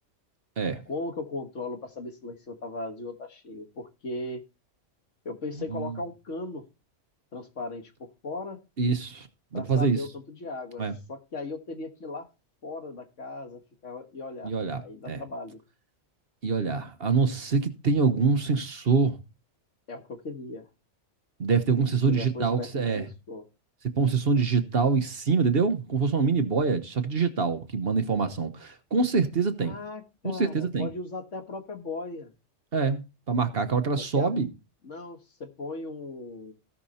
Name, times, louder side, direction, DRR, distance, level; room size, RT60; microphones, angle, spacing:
voice 1, 0.9-4.4 5.3-6.6 7.3-8.6 9.5-10.8 11.1-12.3 12.6-14.5 14.8-15.6 19.9-20.6 22.1-23.4 29.6-32.3 34.0-34.4 34.8-36.5, left 3 dB, 70° left, 2.0 m, -37 dB
voice 2, 5.5-5.9 8.8-9.3 9.5-10.0 10.8-10.9 14.4-15.2 16.4-19.2 21.4-23.0 23.9-29.8 30.3-30.9 32.7-34.5, right 4 dB, 50° right, 1.3 m, -25 dB
17.0 x 6.0 x 4.2 m
omnidirectional pair, 1.3 m